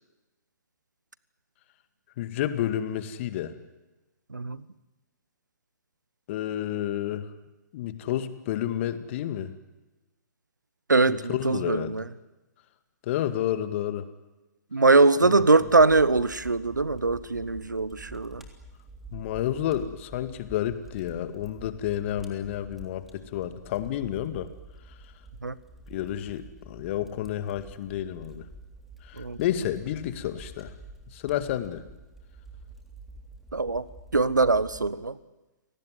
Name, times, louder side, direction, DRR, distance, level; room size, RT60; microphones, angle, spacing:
voice 1, 2.2-3.5 6.3-7.3 7.7-9.6 11.1-11.9 13.0-14.1 15.2-15.4 19.1-24.5 25.9-28.5 29.0-30.7 31.1-31.8, left 11 dB, 40° left, 11 dB, 2.0 m, -30 dB
voice 2, 4.3-4.6 10.9-12.0 14.7-18.4 25.4-25.5 29.2-29.4 33.5-33.9 34.1-35.2, right 3 dB, 85° right, 18 dB, 1.1 m, -22 dB
Fire, 15.6-34.9, right 2 dB, 5° right, 3.4 m, -48 dB
29.5 x 18.0 x 9.6 m, 1.1 s
figure-of-eight pair, 120°, 10 cm